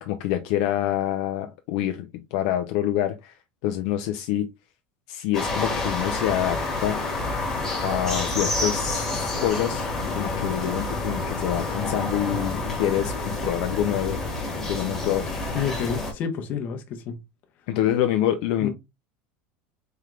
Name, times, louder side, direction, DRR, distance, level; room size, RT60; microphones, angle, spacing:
voice 1, 0.0-3.4 3.6-4.5 5.1-7.0 7.8-14.2 14.7-15.6 17.7-18.7, left 12 dB, 55° left, 0.5 m, -26 dB
sound 1, 5.3-16.1, left 2 dB, 10° left, 1.3 m, -28 dB
voice 2, 15.5-17.1 18.6-18.7, left 7 dB, 35° left, 0.9 m, -29 dB
4.4 x 3.4 x 2.4 m
cardioid pair, 175°, 5 cm